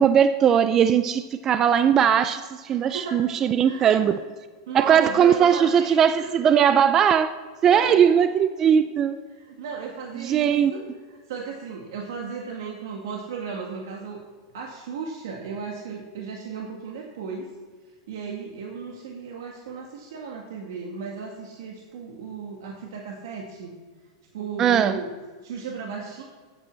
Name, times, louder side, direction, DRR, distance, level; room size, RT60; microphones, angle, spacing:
voice 1, 0.0-4.2 4.7-7.3 7.6-9.2 10.2-10.7 24.6-25.0, right 8 dB, 20° right, 11 dB, 0.3 m, -19 dB
voice 2, 2.7-3.3 3.6-4.2 4.7-6.3 7.6-8.1 9.3-14.2 14.5-17.5 18.1-23.7 24.3-25.1 25.4-26.2, right 5 dB, 70° right, 0 dB, 1.8 m, -35 dB
9.0 x 8.2 x 7.4 m, 1.5 s
supercardioid pair, 170°, 2 cm